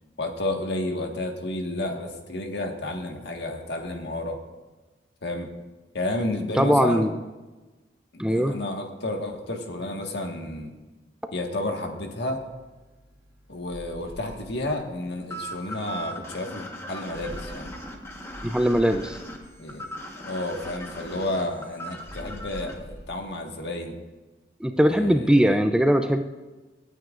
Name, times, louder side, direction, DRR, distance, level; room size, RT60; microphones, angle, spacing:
voice 1, 0.2-4.4 5.2-5.5 5.9-7.1 8.1-10.7 11.3-12.4 13.5-17.7 19.6-19.9 20.2-23.9 24.8-25.6, left 1 dB, 70° left, 2 dB, 1.6 m, -31 dB
voice 2, 6.5-7.1 8.2-8.6 18.4-19.2 24.6-26.2, equal, 5° right, 7 dB, 0.4 m, -20 dB
sound 1, 12.3-23.2, equal, 20° right, 2.8 m, -46 dB
sound 2, 15.3-22.7, equal, 15° left, 1.3 m, -39 dB
27.0 x 9.1 x 2.5 m, 1.2 s
head